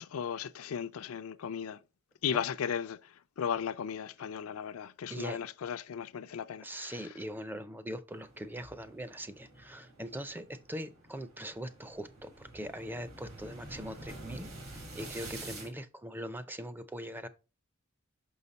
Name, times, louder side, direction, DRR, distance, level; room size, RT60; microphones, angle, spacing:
voice 1, 0.0-1.8 2.2-6.9, left 8 dB, 75° left, 0.4 m, -36 dB
voice 2, 6.6-17.3, equal, 10° right, 0.5 m, -41 dB
sound 1, 8.1-15.7, right 2 dB, 80° right, 3.1 m, -48 dB
5.6 x 5.6 x 4.0 m
head